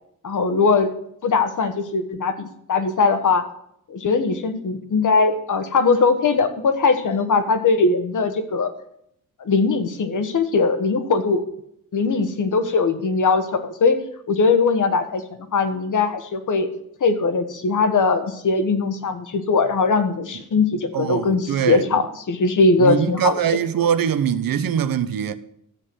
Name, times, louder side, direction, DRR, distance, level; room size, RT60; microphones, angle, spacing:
voice 1, 0.2-0.9 1.2-3.4 3.9-8.7 9.4-11.4 11.9-14.0 14.3-15.2 15.5-16.7 17.0-23.4 23.8-23.9, left 4 dB, 60° left, 1.4 m, -20 dB
voice 2, 20.9-22.0 22.8-25.4, right 8 dB, 80° right, 0.8 m, -22 dB
13.0 x 7.8 x 6.3 m
wide cardioid pair, 150°, 34 cm